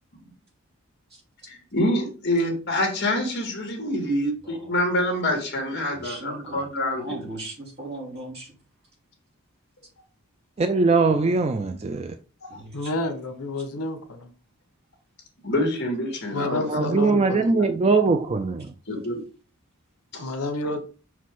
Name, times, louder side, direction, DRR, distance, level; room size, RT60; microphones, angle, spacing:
voice 1, 1.5-7.3 12.4-12.6 15.4-17.8 18.9-19.2 20.1-20.3, left 1 dB, 50° left, 2.0 m, -27 dB
voice 2, 4.4-4.7 5.9-6.7 6.9-8.5 12.5-12.9, right 2 dB, 50° right, 2.7 m, -38 dB
voice 3, 10.6-12.1 16.7-18.7, right 4 dB, 30° right, 0.3 m, -21 dB
voice 4, 12.7-14.3 16.3-17.6 20.2-20.8, left 2 dB, 90° left, 1.0 m, -30 dB
5.9 x 4.9 x 3.7 m
head